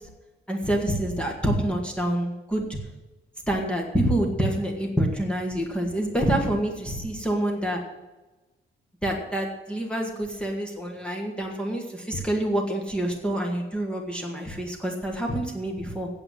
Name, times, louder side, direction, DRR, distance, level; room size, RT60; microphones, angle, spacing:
voice 1, 0.5-2.8 3.5-7.8 9.0-16.1, right 1 dB, 5° left, 0 dB, 1.5 m, -27 dB
8.9 x 8.0 x 7.7 m, 1.1 s
wide cardioid pair, 165°, 21 cm